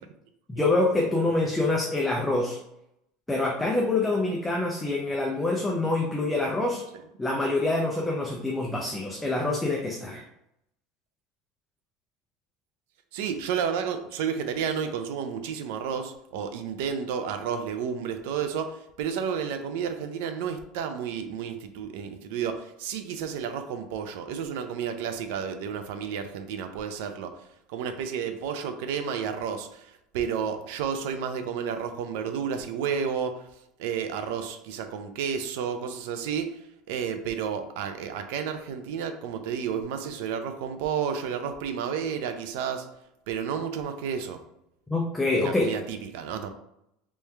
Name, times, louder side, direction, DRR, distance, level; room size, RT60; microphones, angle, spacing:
voice 1, 0.5-2.6 3.3-6.8 7.2-10.2 44.9-45.7, left 2 dB, 5° left, -1 dB, 0.4 m, -26 dB
voice 2, 13.1-33.5 33.8-36.6 36.9-42.9 43.3-44.4 45.4-46.5, right 7 dB, 70° right, 8 dB, 0.5 m, -31 dB
3.4 x 3.1 x 3.3 m, 0.80 s
cardioid pair, 160°, 0 cm